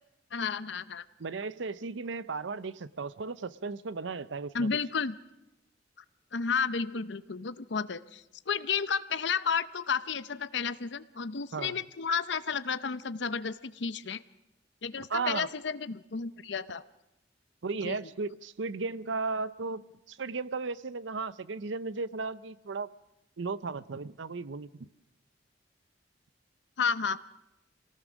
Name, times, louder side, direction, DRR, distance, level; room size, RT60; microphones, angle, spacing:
voice 1, 0.3-1.0 4.5-5.2 6.3-14.2 14.8-16.8 17.8-18.0 26.8-27.2, left 6 dB, 70° left, 0.7 m, -32 dB
voice 2, 1.2-4.7 11.5-11.8 15.0-15.5 17.6-22.9 23.4-24.9, right 4 dB, 85° right, 0.6 m, -35 dB
25.0 x 18.5 x 6.2 m
head